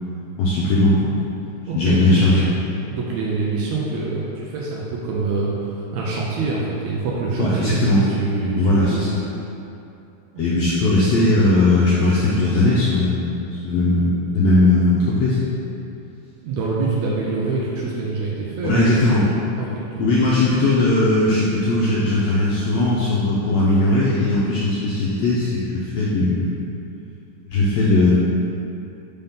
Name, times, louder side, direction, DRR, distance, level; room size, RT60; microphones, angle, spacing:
voice 1, 0.4-1.1 1.7-2.4 7.4-8.0 8.6-9.1 10.4-15.4 18.6-19.3 20.0-26.5 27.4-28.1, left 2 dB, 80° left, -7 dB, 1.5 m, -18 dB
voice 2, 1.7-2.2 2.9-9.1 10.5-10.7 16.4-18.8 19.6-20.0, right 3 dB, 75° right, -4 dB, 1.7 m, -25 dB
5.4 x 3.6 x 5.5 m, 2.8 s
omnidirectional pair, 3.7 m